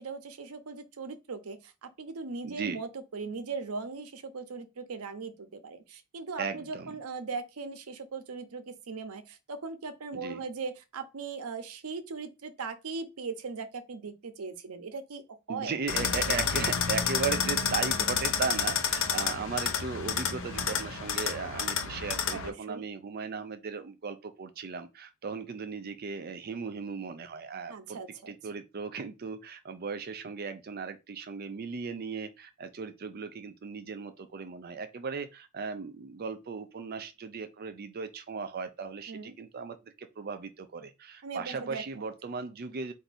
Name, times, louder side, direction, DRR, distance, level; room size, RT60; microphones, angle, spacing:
voice 1, 0.0-15.2 15.5-15.7 19.3-19.5 22.3-22.8 27.7-28.3 39.1-39.3 41.2-42.1, right 4 dB, 90° right, 0.7 m, -39 dB
voice 2, 2.4-2.8 6.4-7.0 10.1-10.4 15.5-28.0 28.3-42.9, right 5 dB, 45° right, 0.4 m, -37 dB
sound 1, 15.9-22.5, left 7 dB, 60° left, 0.8 m, -30 dB
4.5 x 2.6 x 4.1 m
head